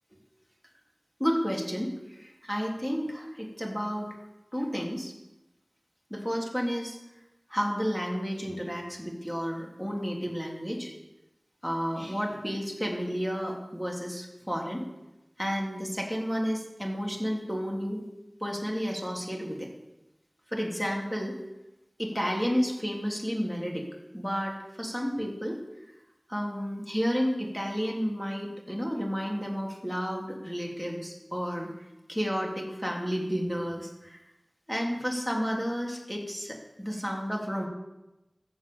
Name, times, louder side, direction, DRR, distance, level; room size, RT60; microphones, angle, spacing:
voice 1, 1.2-4.1 4.5-5.1 6.1-7.0 7.5-10.9 11.6-14.8 15.4-18.1 18.4-19.7 20.5-21.4 22.0-23.9 24.1-25.6 26.3-31.7 32.1-34.2 34.7-37.7, equal, 5° left, -1 dB, 3.3 m, -31 dB
15.0 x 7.9 x 7.8 m, 0.97 s
wide cardioid pair, 50°, 0 cm